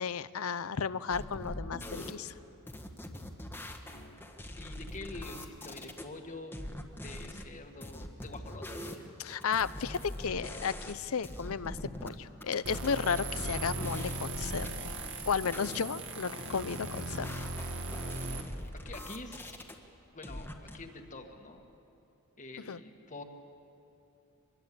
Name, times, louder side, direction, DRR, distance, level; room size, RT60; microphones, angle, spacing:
voice 1, 0.0-2.3 9.2-14.7 15.3-17.3 22.7-22.8, left 6 dB, 75° left, 16 dB, 0.7 m, -33 dB
sound 1, 1.1-2.1 2.7-6.0 6.5-7.5 7.8-11.0 11.2-12.1 12.4-15.8 16.4-19.8 20.2-20.8, left 1 dB, 10° left, 1.5 m, -43 dB
voice 2, 3.9-4.2 4.6-6.6 7.0-9.1 18.0-18.4 18.9-19.6 20.1-21.6 22.4-23.2, left 2 dB, 35° left, 5 dB, 1.8 m, -47 dB
sound 2, 12.7-18.4, right 2 dB, 60° right, 2.1 m, -38 dB
24.5 x 21.5 x 8.6 m, 2.8 s
head